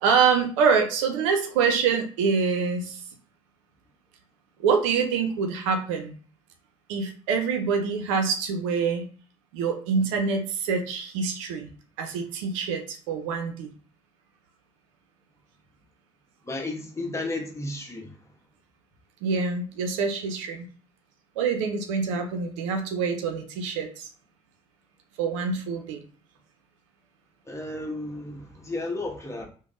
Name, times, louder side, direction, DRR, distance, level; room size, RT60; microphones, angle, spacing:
voice 1, 0.0-3.0 4.6-6.1 6.9-9.0 9.5-11.7 12.0-13.7 19.2-20.7 21.4-24.1 25.2-26.0, right 5 dB, 80° right, 0.5 m, -25 dB
voice 2, 16.4-18.1 27.5-29.4, left 2 dB, 15° left, 0.9 m, -33 dB
3.3 x 2.1 x 2.5 m
hypercardioid pair, 60°, 16 cm